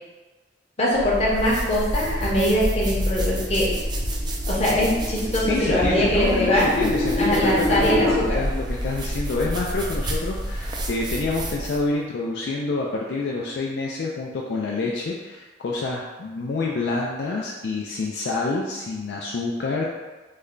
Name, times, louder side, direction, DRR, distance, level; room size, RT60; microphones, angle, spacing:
voice 1, 0.8-3.7 4.4-6.8 7.2-8.4, equal, 35° left, -5 dB, 0.7 m, -22 dB
sound 1, 0.9-11.9, equal, 25° right, 0.3 m, -28 dB
sound 2, 3.4-8.1, left 2 dB, 5° right, 0.7 m, -28 dB
voice 2, 5.5-19.8, left 3 dB, 60° left, -2 dB, 0.3 m, -27 dB
3.2 x 2.2 x 3.7 m, 1.2 s
head